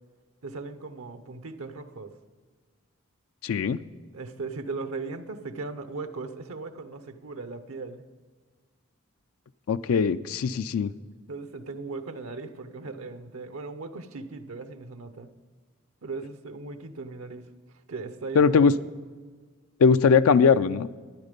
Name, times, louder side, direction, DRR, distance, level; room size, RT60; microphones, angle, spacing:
voice 1, 0.4-2.1 4.1-8.0 11.3-15.3 16.0-17.4 17.7-18.5, right 3 dB, 90° right, 10 dB, 0.8 m, -38 dB
voice 2, 3.4-3.8 9.7-10.9 18.4-18.7 19.8-20.9, left 5 dB, 85° left, 12 dB, 0.4 m, -20 dB
12.0 x 9.9 x 5.2 m, 1.5 s
head